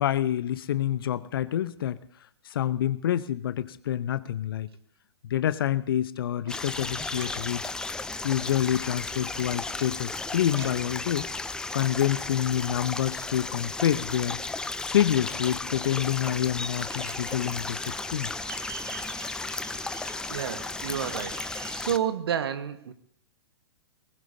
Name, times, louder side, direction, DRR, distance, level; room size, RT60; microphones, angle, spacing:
voice 1, 0.0-2.0 2.4-4.7 5.2-7.6 8.2-11.3 11.7-14.4 14.8-17.8 18.1-18.3, left 11 dB, 55° left, 15 dB, 0.9 m, -27 dB
sound 1, 6.5-22.0, left 3 dB, 5° left, 0.6 m, -34 dB
sound 2, 16.6-21.9, right 9 dB, 30° right, 1.6 m, -45 dB
voice 2, 20.3-22.9, right 9 dB, 60° right, 10 dB, 1.5 m, -31 dB
23.5 x 19.5 x 2.8 m, 0.66 s
figure-of-eight pair, 115°, 14 cm